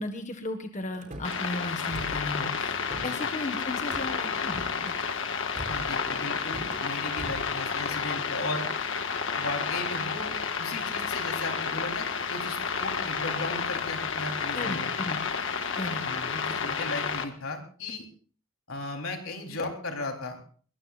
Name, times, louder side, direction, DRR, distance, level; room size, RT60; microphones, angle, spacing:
voice 1, 0.0-4.9 14.5-15.2 15.7-16.0, left 2 dB, 35° left, 6 dB, 1.5 m, -35 dB
Car / Slam, 0.9-1.4 1.9-2.3 2.6-3.3 3.9-4.1 4.5-5.0 5.5-6.0 6.4-6.8 7.1-7.5, right 1 dB, 40° right, 3.8 m, -41 dB
sound 1, 1.2-17.2, left 5 dB, 65° left, 1.6 m, -31 dB
voice 2, 5.6-8.7 9.4-15.0 16.0-18.1 18.7-20.4, left 2 dB, 85° left, 2 dB, 3.8 m, -36 dB
22.5 x 22.0 x 2.5 m, 0.44 s
head